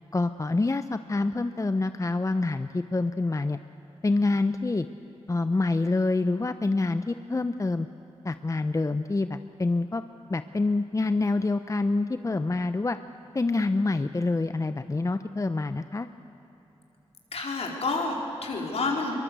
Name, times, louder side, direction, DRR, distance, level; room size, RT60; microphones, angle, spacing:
voice 1, 0.1-3.6 4.0-4.8 5.3-7.9 8.2-10.0 10.3-13.0 13.3-16.1, left 3 dB, 30° left, 10 dB, 0.7 m, -26 dB
voice 2, 17.3-19.1, left 3 dB, 70° left, 0 dB, 4.3 m, -29 dB
22.5 x 22.5 x 8.2 m, 3.0 s
cardioid pair, 50°, 11 cm